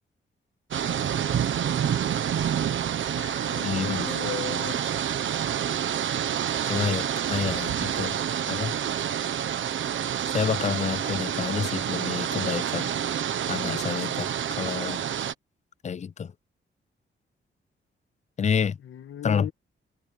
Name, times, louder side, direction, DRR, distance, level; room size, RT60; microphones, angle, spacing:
sound 1, 0.7-15.3, right 9 dB, 75° right, 1.2 m, -28 dB
voice 1, 3.1-4.8 18.8-19.5, left 11 dB, 85° left, 1.6 m, -37 dB
voice 2, 3.6-4.1 6.7-8.2 8.5-8.8 10.3-13.0 13.5-15.0 15.8-16.3 18.4-18.8 19.2-19.5, left 7 dB, 35° left, 0.5 m, -29 dB
wide cardioid pair, 125°, 20 cm